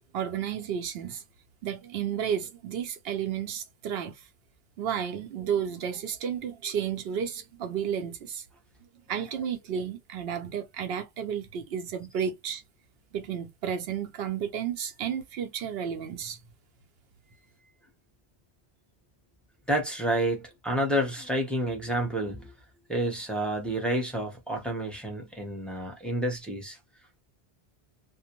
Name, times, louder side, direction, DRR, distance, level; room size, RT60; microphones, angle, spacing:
voice 1, 0.1-1.2 1.6-4.2 4.8-8.4 9.1-12.6 13.1-16.4, right 8 dB, 75° right, 0.9 m, -32 dB
voice 2, 19.7-22.5 22.9-26.8, right 1 dB, ahead, 0.7 m, -29 dB
2.3 x 2.1 x 2.8 m
omnidirectional pair, 1.0 m